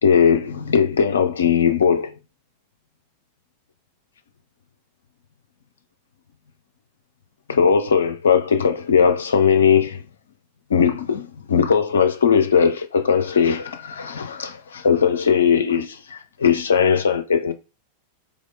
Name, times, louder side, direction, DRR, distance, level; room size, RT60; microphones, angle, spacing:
voice 1, 0.0-2.1 7.5-10.0 10.7-17.5, left 6 dB, 65° left, 0.6 m, -19 dB
3.6 x 3.5 x 3.7 m
figure-of-eight pair, 90°, 0 cm